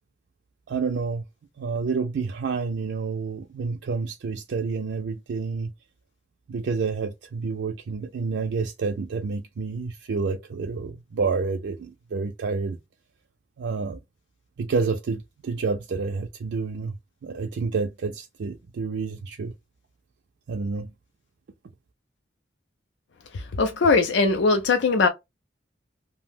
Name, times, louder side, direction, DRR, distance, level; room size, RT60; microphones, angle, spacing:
voice 1, 0.7-1.2 1.6-5.7 6.5-12.8 13.6-14.0 14.6-16.9 17.2-19.5 20.5-20.9, right 4 dB, 70° right, 0.4 m, -29 dB
voice 2, 23.3-25.1, left 4 dB, 75° left, 0.4 m, -20 dB
2.7 x 2.1 x 3.4 m
head